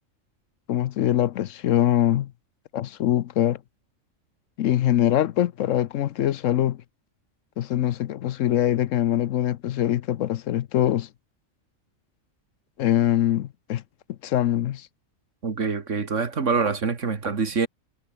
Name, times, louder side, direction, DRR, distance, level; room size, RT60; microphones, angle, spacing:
voice 1, 0.7-2.3 2.7-3.6 4.6-6.8 7.6-11.1 12.8-13.8 14.2-14.9, left 12 dB, 75° left, 1.0 m, -23 dB
voice 2, 15.4-17.7, right 5 dB, 65° right, 2.3 m, -25 dB
omnidirectional pair, 1.4 m